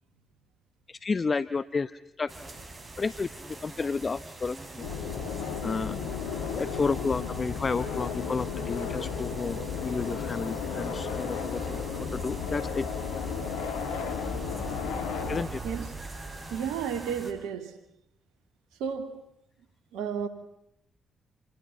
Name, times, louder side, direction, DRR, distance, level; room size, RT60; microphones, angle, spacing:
voice 1, 0.9-2.3 3.0-3.3 3.6-4.9 5.6-6.0 6.5-11.8 12.1-12.9 15.3-15.6, left 4 dB, 40° left, 1.1 m, -31 dB
sound 1, 2.3-17.3, right 2 dB, 35° right, 7.2 m, -44 dB
sound 2, 4.8-15.4, left 6 dB, 80° left, 2.6 m, -34 dB
sound 3, 7.6-16.9, right 3 dB, 55° right, 5.1 m, -45 dB
voice 2, 16.5-17.8 18.8-19.2 19.9-20.3, right 7 dB, 75° right, 2.9 m, -32 dB
29.5 x 29.5 x 5.7 m
hypercardioid pair, 40°, 0 cm